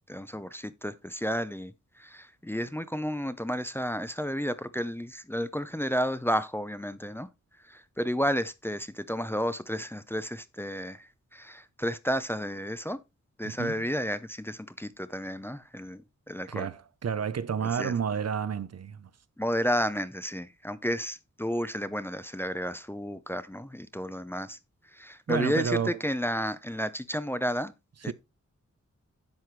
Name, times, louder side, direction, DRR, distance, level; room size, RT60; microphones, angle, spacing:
voice 1, 0.1-1.7 2.0-7.3 7.7-11.1 11.3-13.0 13.4-16.0 16.3-16.7 17.8-17.9 19.4-24.6 24.9-27.7 28.0-28.1, equal, 10° left, 0.6 m, -32 dB
voice 2, 13.4-13.9 16.5-19.1 25.3-26.0 28.1-28.2, right 7 dB, 60° right, 0.7 m, -30 dB
10.5 x 7.7 x 3.2 m
wide cardioid pair, 145°, 29 cm